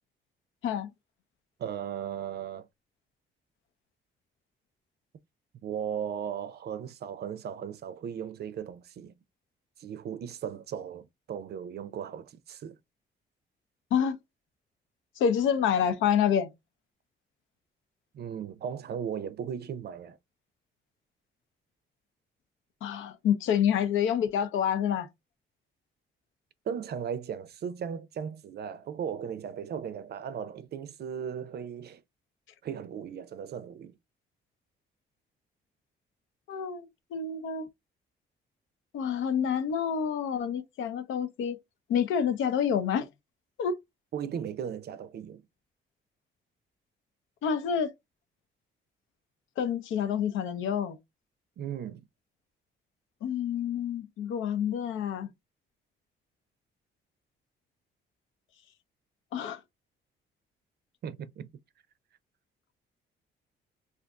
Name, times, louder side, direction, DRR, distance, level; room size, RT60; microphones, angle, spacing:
voice 1, 1.6-2.7 5.6-9.1 9.8-12.8 18.1-20.2 26.7-32.0 32.6-33.9 44.1-45.4 51.6-52.0 61.0-61.5, right 8 dB, 55° right, 0.5 m, -37 dB
voice 2, 15.2-16.5 22.8-25.1 36.5-37.7 38.9-41.6 41.9-43.1 43.6-43.7 47.4-47.9 49.6-51.0 53.2-55.3 59.3-59.6, left 8 dB, 85° left, 0.6 m, -28 dB
2.5 x 2.4 x 3.5 m
cardioid pair, 90°, 20 cm